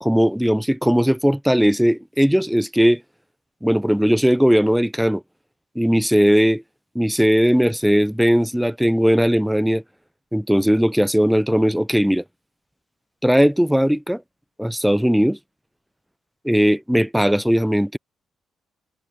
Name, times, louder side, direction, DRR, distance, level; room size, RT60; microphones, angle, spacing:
voice 1, 0.0-3.0 3.6-5.2 5.8-6.6 6.9-9.8 10.3-12.2 13.2-14.2 14.6-15.4 16.4-18.0, equal, ahead, 0.4 m, -18 dB
cardioid pair, 90°, 0 cm